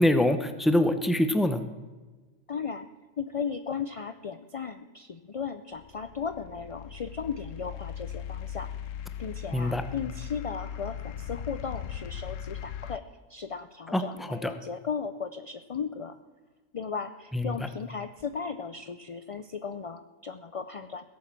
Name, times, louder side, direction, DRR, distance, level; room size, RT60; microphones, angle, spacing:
voice 1, 0.0-1.6 9.5-9.8 13.9-14.5 17.3-17.6, left 1 dB, ahead, 9 dB, 0.7 m, -24 dB
voice 2, 2.5-2.9 3.2-8.7 9.2-13.0 13.3-16.2 16.7-21.1, left 6 dB, 50° left, 10 dB, 0.4 m, -36 dB
sound 1, 5.7-13.0, left 9 dB, 85° left, 1.0 m, -39 dB
17.0 x 8.5 x 7.5 m, 1.3 s
omnidirectional pair, 1.3 m